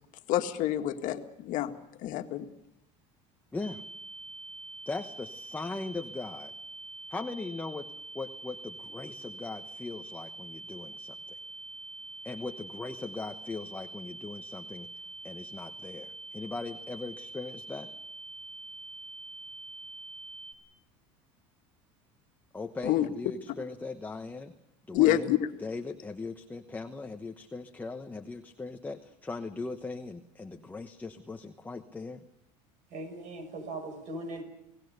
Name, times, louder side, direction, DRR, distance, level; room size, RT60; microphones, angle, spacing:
voice 1, 0.3-1.7 2.0-2.5 22.8-23.1 24.9-25.5, left 13 dB, 60° left, 6 dB, 1.9 m, -27 dB
voice 2, 3.5-3.8 4.9-6.5 7.1-7.9 8.1-11.4 12.2-14.9 15.2-17.9 22.5-24.5 24.9-32.2, left 3 dB, 10° left, 5 dB, 1.1 m, -39 dB
sound 1, 3.6-20.5, right 2 dB, 5° right, 7.1 m, -45 dB
voice 3, 32.9-34.4, right 2 dB, 55° right, 8 dB, 6.7 m, -39 dB
29.5 x 18.5 x 6.7 m, 0.84 s
supercardioid pair, 125°, 15 cm